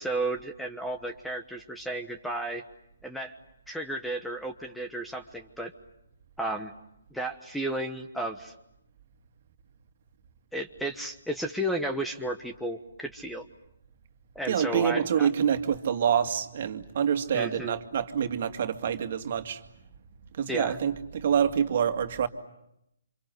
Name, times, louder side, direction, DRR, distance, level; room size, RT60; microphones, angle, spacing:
voice 1, 0.0-2.6 3.0-3.3 3.7-5.7 6.4-6.7 7.1-8.5 10.5-13.4 14.3-15.3 17.3-17.8 20.5-20.8, right 1 dB, ahead, 6 dB, 1.2 m, -33 dB
voice 2, 14.5-19.6 20.3-22.3, right 8 dB, 50° right, 7 dB, 2.2 m, -26 dB
29.0 x 26.5 x 7.8 m, 0.81 s
figure-of-eight pair, 140°, 0 cm